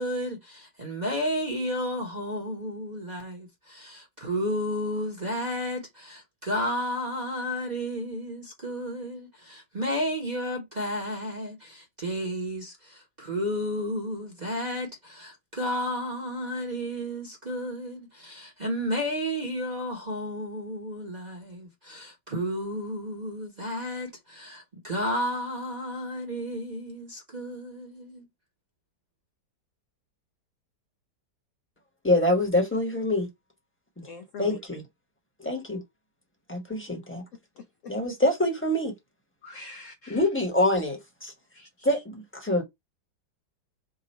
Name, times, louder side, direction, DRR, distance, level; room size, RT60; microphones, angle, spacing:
voice 1, 0.0-28.3, equal, 30° right, 1.0 m, -32 dB
voice 2, 32.0-33.3 34.0-34.1 34.4-34.8 35.4-35.8 36.5-37.2 37.9-38.9 40.1-41.3 41.8-42.6, left 1 dB, 10° left, 1.0 m, -25 dB
voice 3, 34.1-34.6 37.6-37.9 39.4-40.2 41.5-42.0, left 4 dB, 65° left, 0.8 m, -44 dB
3.8 x 2.4 x 4.3 m
omnidirectional pair, 1.9 m